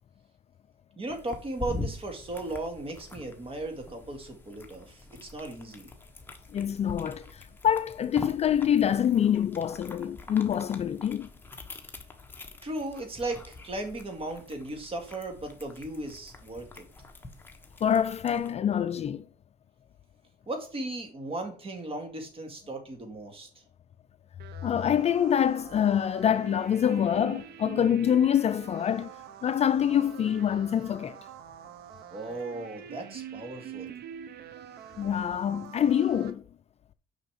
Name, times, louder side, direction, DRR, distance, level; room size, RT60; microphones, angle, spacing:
voice 1, 1.0-5.9 12.6-16.9 20.5-23.5 32.1-33.9, right 2 dB, 35° right, 2.4 m, -36 dB
sound 1, 1.1-18.5, left 2 dB, 10° left, 1.3 m, -44 dB
voice 2, 6.5-11.3 17.8-19.2 24.6-29.1 29.4-31.2 35.0-36.4, left 9 dB, 40° left, 0.4 m, -25 dB
sound 2, 24.4-36.3, right 9 dB, 70° right, 1.0 m, -45 dB
6.4 x 5.6 x 5.1 m
cardioid pair, 110°, 17 cm